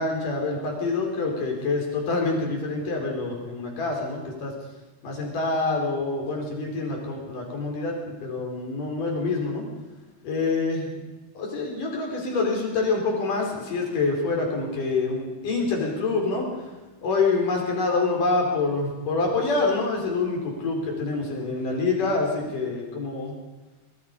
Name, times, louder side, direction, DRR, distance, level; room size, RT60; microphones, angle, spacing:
voice 1, 0.0-4.5 5.0-9.6 10.2-10.9 11.3-16.5 17.0-23.3, left 3 dB, 85° left, 1 dB, 6.3 m, -26 dB
24.0 x 22.5 x 5.4 m, 1.2 s
omnidirectional pair, 3.6 m